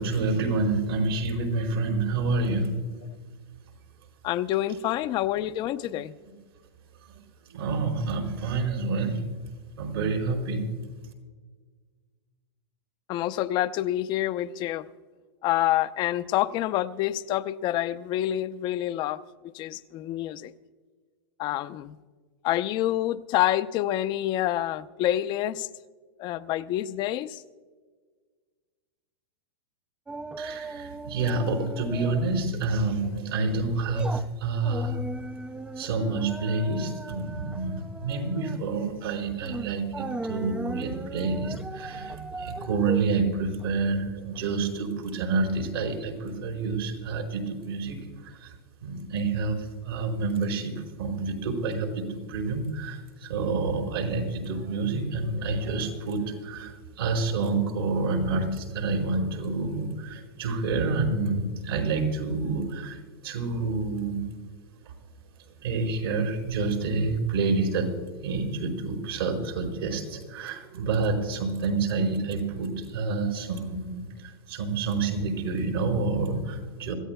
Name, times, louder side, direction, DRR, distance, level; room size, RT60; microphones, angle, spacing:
voice 1, 0.0-2.7 5.8-5.9 7.5-9.2 9.8-10.8 30.4-35.0 35.8-48.0 48.2-48.5 48.8-50.7 51.0-64.3 65.6-67.9 68.2-76.9, right 3 dB, 80° right, 4.8 m, -28 dB
voice 2, 4.2-6.1 13.1-14.9 15.4-20.5 21.4-22.0 22.4-25.7 26.2-27.4, left 13 dB, 35° left, 0.6 m, -27 dB
sound 1, 30.1-32.5 32.8-33.0 33.4-44.4 44.7-44.8, right 2 dB, 10° right, 0.4 m, -38 dB
26.0 x 14.5 x 2.3 m
hypercardioid pair, 115°, 13 cm